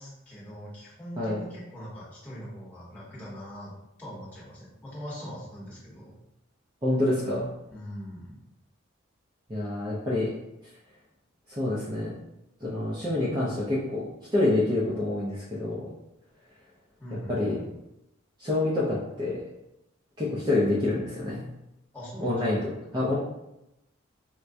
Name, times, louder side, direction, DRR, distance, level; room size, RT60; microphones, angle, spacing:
voice 1, 0.0-3.7 4.0-6.1 7.7-8.3 17.0-17.6 21.9-22.6, equal, 10° left, -8 dB, 1.1 m, -41 dB
voice 2, 6.8-7.5 9.5-10.3 11.5-12.1 12.6-15.9 17.3-17.6 18.4-19.4 20.2-21.5 22.2-22.6 22.9-23.2, left 2 dB, 20° right, -7 dB, 0.5 m, -27 dB
4.3 x 2.2 x 2.5 m, 0.90 s
head